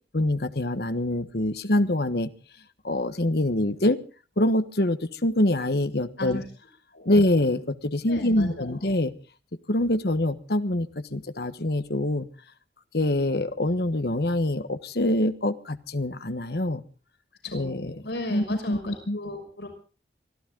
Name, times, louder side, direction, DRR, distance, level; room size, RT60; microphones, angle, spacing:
voice 1, 0.1-2.3 2.8-4.0 4.4-6.4 7.0-9.1 9.7-12.3 12.9-16.8 17.5-18.0 18.3-19.2, left 1 dB, 65° left, 11 dB, 1.3 m, -25 dB
voice 2, 8.1-8.7 17.4-19.7, left 1 dB, 85° left, 4 dB, 6.0 m, -35 dB
24.5 x 15.0 x 3.8 m, 0.37 s
head